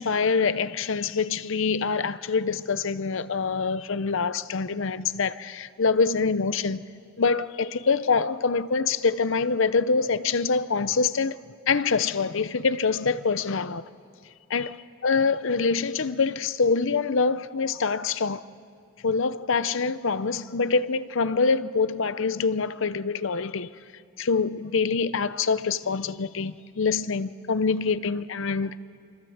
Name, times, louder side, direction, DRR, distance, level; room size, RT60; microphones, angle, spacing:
voice 1, 0.0-6.8 7.2-11.4 11.7-13.8 14.5-14.8 15.0-18.4 19.0-23.7 24.2-28.8, left 4 dB, 65° left, 0.7 m, -25 dB
27.5 x 25.5 x 7.9 m
head